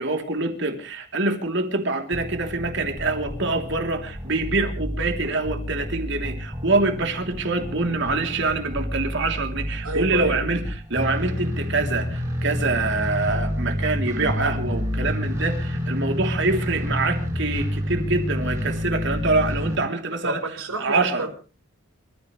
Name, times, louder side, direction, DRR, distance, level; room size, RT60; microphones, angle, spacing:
voice 1, 0.0-10.6 10.9-20.4 20.8-21.2, right 3 dB, 55° right, 5 dB, 3.1 m, -25 dB
sound 1, 2.1-19.8, equal, 15° right, 5.3 m, -29 dB
voice 2, 9.8-10.4 20.2-21.3, right 1 dB, 90° right, 5 dB, 4.5 m, -28 dB
28.5 x 14.5 x 3.2 m, 0.35 s
head